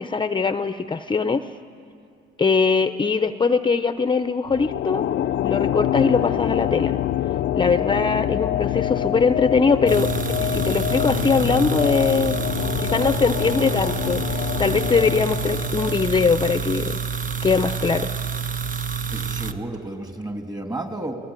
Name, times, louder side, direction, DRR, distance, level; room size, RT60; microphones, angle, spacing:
voice 1, 0.0-1.5 2.4-5.0 5.4-7.0 7.6-10.1 10.4-12.4 12.8-17.0 17.4-18.1, left 4 dB, 25° left, 10 dB, 0.7 m, -21 dB
sound 1, 4.5-17.0, left 12 dB, 65° left, 0.6 m, -26 dB
sound 2, 9.9-19.5, right 6 dB, 40° right, 1.1 m, -28 dB
voice 2, 19.1-21.1, right 1 dB, 20° right, 4 dB, 3.0 m, -32 dB
28.0 x 19.0 x 9.0 m, 2.3 s
cardioid pair, 90°, 20 cm